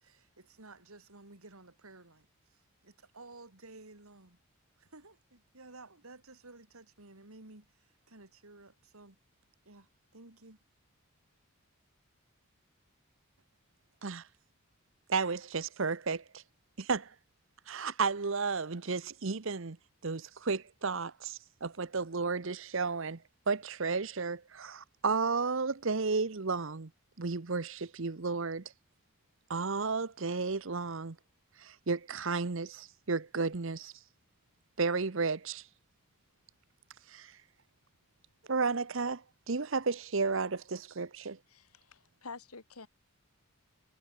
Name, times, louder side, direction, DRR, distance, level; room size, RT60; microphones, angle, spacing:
voice 1, 0.0-4.4 4.8-9.2 9.6-10.6, right 2 dB, 75° right, 3.1 m, -54 dB
voice 2, 15.1-16.4 16.8-17.1 17.7-19.8 20.0-23.2 23.5-26.9 27.2-28.6 29.5-31.2 31.6-33.9 34.8-35.6 37.1-37.3 38.5-41.4, right 4 dB, 60° right, 0.9 m, -33 dB
voice 3, 41.5-42.9, left 4 dB, 90° left, 2.1 m, -48 dB
head